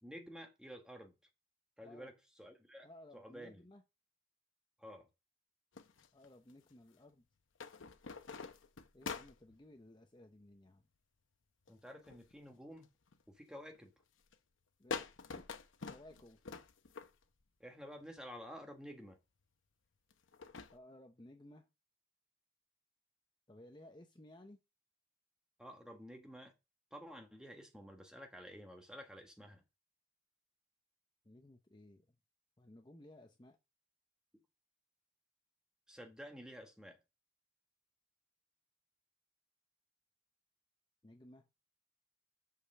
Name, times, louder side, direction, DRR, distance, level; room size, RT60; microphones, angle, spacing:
voice 1, 0.0-1.1 1.8-2.9 3.1-3.6 4.8-5.1 11.7-12.9 13.3-13.9 17.6-19.2 25.6-26.5 26.9-29.6 35.9-37.0, equal, 5° right, 1.3 m, -51 dB
voice 2, 2.8-3.8 6.1-7.2 8.9-10.8 14.8-15.1 15.4-16.6 20.7-21.7 23.5-24.6 31.2-32.1 32.6-33.6 41.0-41.5, left 1 dB, 25° left, 0.7 m, -58 dB
sound 1, 5.8-6.7 7.6-9.6 11.7-12.3 12.8-13.2 13.8-14.0 14.3-14.4 14.9-17.4 18.2-18.3 20.1-20.8, left 4 dB, 90° left, 0.9 m, -46 dB
6.5 x 5.5 x 6.5 m
head